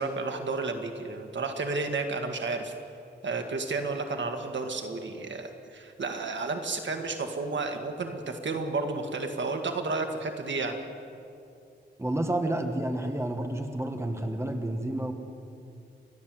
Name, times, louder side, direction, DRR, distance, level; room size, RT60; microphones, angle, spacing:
voice 1, 0.0-2.7 3.2-10.8, right 3 dB, 80° right, 5 dB, 1.9 m, -32 dB
voice 2, 12.0-15.1, right 1 dB, 15° right, 4 dB, 1.7 m, -30 dB
29.5 x 12.0 x 7.7 m, 2.6 s
wide cardioid pair, 140°, 19 cm